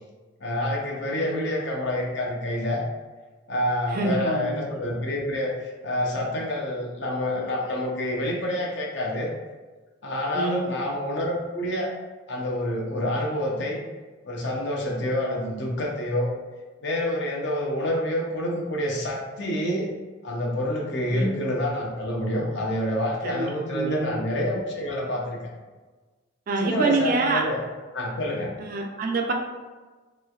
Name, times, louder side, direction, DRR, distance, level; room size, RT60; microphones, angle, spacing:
voice 1, 0.4-2.8 3.5-9.3 10.0-11.9 12.3-13.8 14.2-16.3 16.8-19.9 20.2-25.4 26.6-27.6 27.9-28.5, left 1 dB, 55° left, -1 dB, 0.6 m, -27 dB
voice 2, 3.9-4.7 10.3-10.7 21.1-21.4 23.2-24.2 26.5-27.5 28.6-29.3, right 3 dB, 40° right, 2 dB, 0.3 m, -26 dB
3.1 x 3.0 x 2.4 m, 1.3 s
head